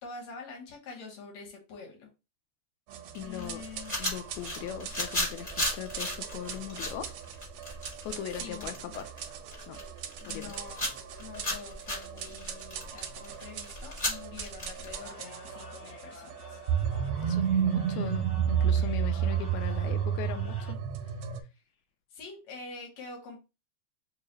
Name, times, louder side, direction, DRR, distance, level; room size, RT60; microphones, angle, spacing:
voice 1, 0.0-2.1 3.2-4.0 7.8-8.0 8.4-8.8 10.2-10.9 11.2-16.6 22.1-23.4, left 4 dB, 70° left, 0 dB, 2.3 m, -46 dB
sound 1, 2.9-21.4, right 8 dB, 80° right, 1.5 m, -33 dB
sound 2, 3.1-15.1, left 1 dB, 25° left, 0.8 m, -36 dB
voice 2, 3.2-3.6 4.0-7.1 8.1-9.0 9.7-9.8 10.3-10.6 17.2-20.8, left 11 dB, 85° left, 7 dB, 1.9 m, -39 dB
sound 3, 14.9-20.7, left 3 dB, 55° left, 1.7 m, -49 dB
4.7 x 2.3 x 3.0 m, 0.28 s
omnidirectional pair, 3.4 m